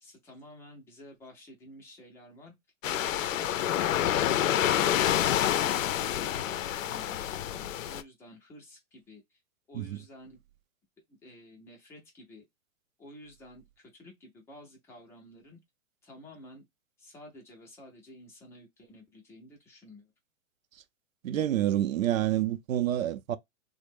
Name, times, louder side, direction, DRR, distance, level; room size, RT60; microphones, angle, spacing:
voice 1, 0.0-2.5 2.8-3.7 5.6-6.6 6.8-9.4 9.7-10.4 11.1-12.4 13.0-15.6 16.0-16.7 17.0-20.1, left 1 dB, 5° left, 0.4 m, -51 dB
sound 1, 2.8-8.0, left 11 dB, 75° left, 0.5 m, -28 dB
voice 2, 21.2-23.4, right 12 dB, 85° right, 0.6 m, -28 dB
3.1 x 2.1 x 3.3 m
hypercardioid pair, 135°, 40 cm